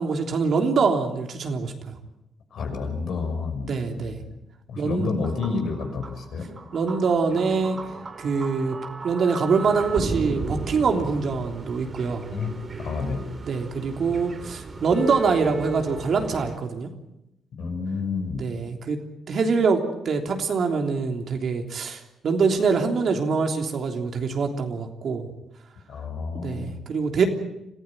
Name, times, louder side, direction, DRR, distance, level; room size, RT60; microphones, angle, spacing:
voice 1, 0.0-2.0 3.7-4.2 4.8-5.2 6.7-7.8 8.2-8.8 9.0-12.3 13.4-16.9 18.3-19.0 19.3-25.3 26.3-27.3, right 5 dB, 55° right, 4 dB, 3.3 m, -24 dB
voice 2, 2.5-4.3 4.7-6.4 12.3-13.4 17.6-18.5 25.9-26.8, left 4 dB, 65° left, 4 dB, 6.1 m, -30 dB
sound 1, 5.0-16.6, right 3 dB, 35° right, 2.4 m, -35 dB
26.5 x 15.0 x 9.1 m, 0.89 s
cardioid pair, 90°, 0 cm